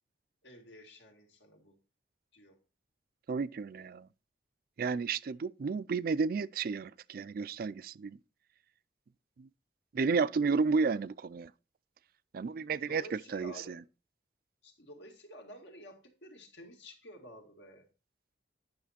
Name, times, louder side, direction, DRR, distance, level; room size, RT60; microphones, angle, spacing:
voice 1, 0.4-1.8 2.3-2.6 12.8-13.8 14.6-17.9, equal, 80° left, 2.0 m, -51 dB
voice 2, 3.3-4.1 4.8-8.2 9.4-9.5 9.9-11.5 12.3-13.5, right 4 dB, 55° right, 0.4 m, -32 dB
9.6 x 6.0 x 4.2 m
head